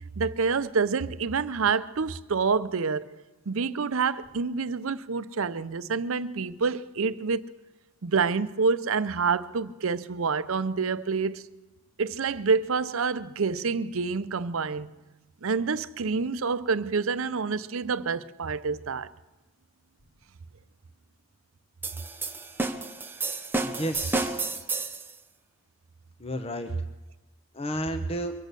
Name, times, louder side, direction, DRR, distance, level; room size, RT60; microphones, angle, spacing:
voice 1, 0.2-3.1 3.5-7.4 8.0-11.4 12.0-14.9 15.4-19.1, right 5 dB, 75° right, 0.6 m, -27 dB
sound 1, 21.8-25.1, right 3 dB, 10° right, 0.7 m, -31 dB
voice 2, 23.6-24.4 26.2-26.7 27.5-28.3, equal, 25° left, 0.8 m, -32 dB
23.5 x 8.3 x 6.7 m
head